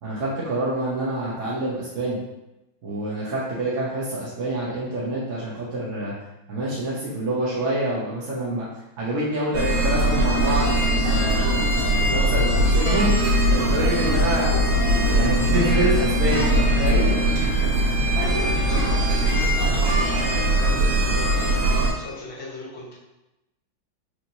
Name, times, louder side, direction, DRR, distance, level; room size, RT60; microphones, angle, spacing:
voice 1, 0.0-2.2 2.8-6.1 6.5-8.7 9.0-13.1 13.6-14.6 14.8-17.1, right 1 dB, 55° right, -7 dB, 0.9 m, -27 dB
sound 1, 9.5-21.9, right 1 dB, 75° right, 1.8 m, -20 dB
voice 2, 18.1-22.9, left 2 dB, 80° left, -6 dB, 2.0 m, -36 dB
4.8 x 3.0 x 2.7 m, 0.96 s
omnidirectional pair, 2.2 m